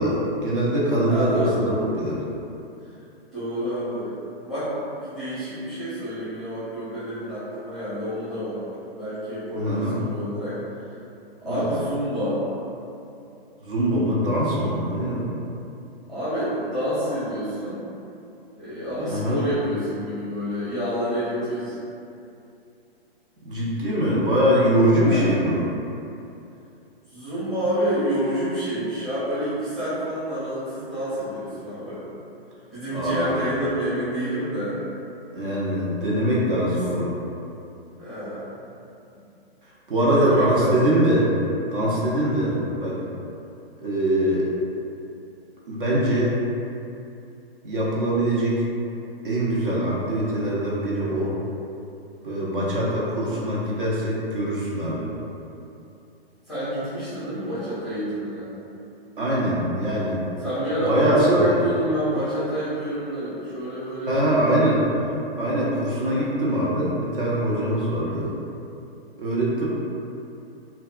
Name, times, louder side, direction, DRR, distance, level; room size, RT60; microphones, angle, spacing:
voice 1, 0.0-2.2 9.5-10.0 11.5-11.7 13.6-15.3 19.1-19.4 23.4-25.7 32.9-33.4 35.3-37.2 39.9-41.3 41.7-42.9 43.8-44.4 45.7-46.4 47.6-48.6 49.2-51.4 52.2-55.1 59.2-60.2 60.9-61.6 64.1-64.8 65.3-68.3 69.2-69.7, right 1 dB, 60° right, -6 dB, 0.7 m, -23 dB
voice 2, 1.1-1.7 3.3-4.1 4.4-4.7 5.0-8.6 8.9-10.6 11.4-12.4 16.1-17.8 18.6-21.8 25.0-25.4 27.1-32.0 32.7-34.8 36.7-36.8 37.9-38.5 39.9-41.0 42.4-42.6 56.5-58.5 60.4-64.8 66.1-66.3 68.0-68.2, equal, ahead, -16 dB, 0.7 m, -28 dB
2.6 x 2.3 x 2.4 m, 2.7 s
figure-of-eight pair, 125°, 31 cm